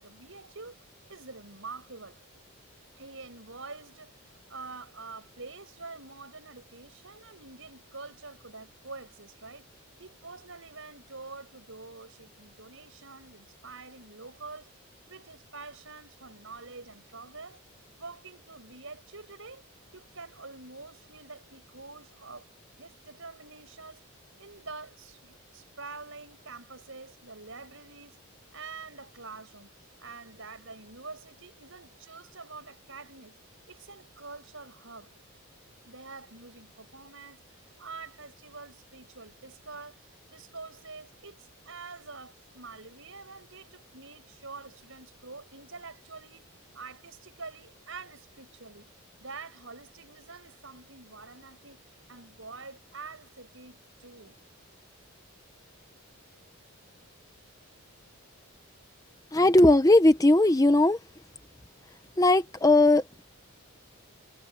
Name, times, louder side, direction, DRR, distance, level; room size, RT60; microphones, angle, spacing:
voice 1, 0.0-2.4 3.0-14.7 15.1-17.6 18.0-19.6 19.9-22.5 22.8-24.0 24.4-28.3 28.5-33.4 33.7-35.1 35.9-48.9 49.2-54.4, right 4 dB, 65° right, 7.5 m, -46 dB
voice 2, 59.3-61.0 62.2-63.2, left 2 dB, 15° left, 0.9 m, -19 dB
head